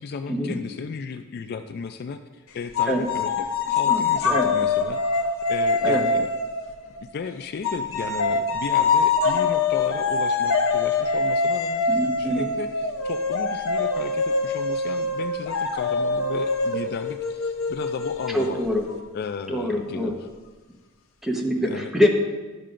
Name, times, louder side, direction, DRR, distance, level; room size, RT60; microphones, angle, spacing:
voice 1, 0.0-5.0 5.5-6.3 7.0-18.6 19.1-20.2 21.6-21.9, left 5 dB, 50° left, 8 dB, 0.3 m, -35 dB
sound 1, 2.7-7.1 7.6-19.0, left 4 dB, 70° left, 0.7 m, -24 dB
voice 2, 11.9-12.5 18.3-18.8 19.5-20.1 21.2-22.1, left 1 dB, ahead, -1 dB, 1.0 m, -24 dB
11.5 x 6.6 x 2.5 m, 1.3 s
head